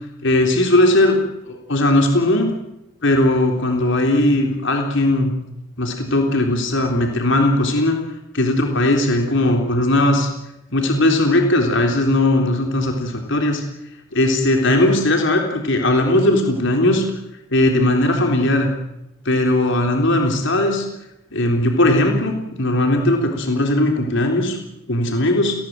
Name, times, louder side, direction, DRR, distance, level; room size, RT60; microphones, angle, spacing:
voice 1, 0.2-2.5 3.0-5.3 5.8-8.0 8.3-10.3 10.7-13.6 14.1-17.1 17.5-18.7 19.3-20.9 21.3-24.6 24.9-25.5, left 1 dB, 60° left, 3 dB, 3.8 m, -18 dB
29.5 x 21.0 x 7.7 m, 0.87 s
head